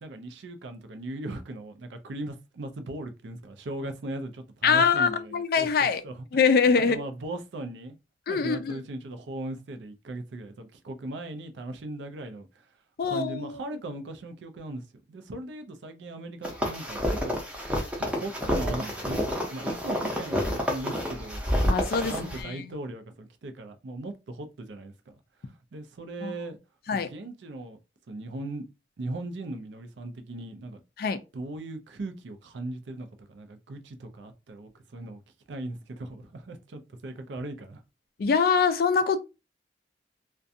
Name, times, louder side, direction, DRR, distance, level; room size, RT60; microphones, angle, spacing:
voice 1, 0.0-5.7 6.0-6.2 6.8-8.0 8.3-12.5 13.0-14.8 15.1-17.4 18.0-21.4 21.8-25.2 25.7-26.6 26.9-27.8 28.1-28.7 29.0-30.8 31.3-35.2 35.5-37.8, right 2 dB, 75° right, 0.4 m, -38 dB
voice 2, 4.6-6.0 6.3-7.0 8.3-8.7 13.0-13.6 21.6-22.7 26.2-26.3 26.9-27.1 31.0-31.2 38.2-39.2, left 5 dB, 55° left, 0.3 m, -24 dB
sound 1, 16.4-22.4, equal, 5° right, 0.5 m, -29 dB
2.4 x 2.2 x 2.6 m
head